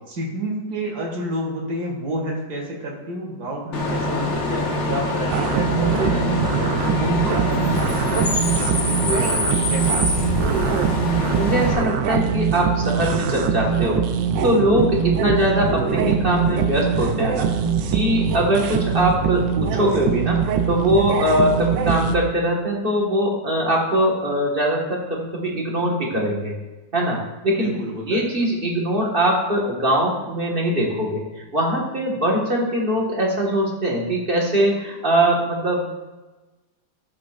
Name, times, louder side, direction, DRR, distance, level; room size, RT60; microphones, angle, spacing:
voice 1, 0.1-8.3 8.7-11.1 27.6-28.5, right 1 dB, 55° right, -2 dB, 2.5 m, -30 dB
Bus / Idling / Screech, 3.7-11.7, left 2 dB, 40° left, 1.5 m, -24 dB
sound 1, 5.3-22.2, right 7 dB, 80° right, 1.4 m, -22 dB
voice 2, 11.3-14.1 14.4-17.5 17.9-20.4 20.7-26.5 26.9-27.7 28.1-35.9, right 1 dB, 30° right, -2 dB, 1.6 m, -21 dB
13.5 x 7.5 x 2.5 m, 1.2 s
omnidirectional pair, 2.0 m